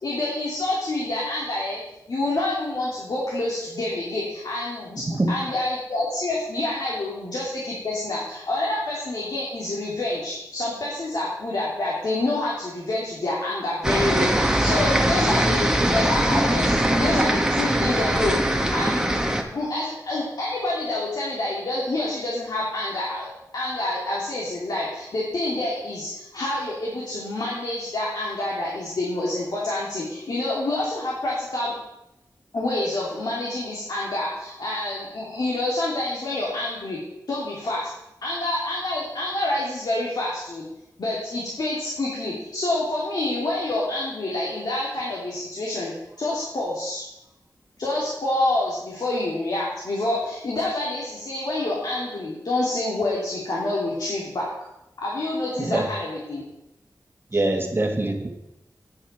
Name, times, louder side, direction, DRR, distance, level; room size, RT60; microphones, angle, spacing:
voice 1, 0.0-1.8 2.1-23.3 23.5-31.7 32.5-37.0 37.3-37.9 38.2-40.6 41.0-47.0 47.8-54.7 55.0-56.4, left 2 dB, 75° left, 3.0 m, -27 dB
voice 2, 5.1-5.4 55.6-55.9 57.3-58.3, right 2 dB, 35° right, 1.7 m, -23 dB
sound 1, 13.8-19.4, right 1 dB, 10° right, 1.4 m, -21 dB
9.7 x 8.3 x 6.0 m
wide cardioid pair, 85°, 7 cm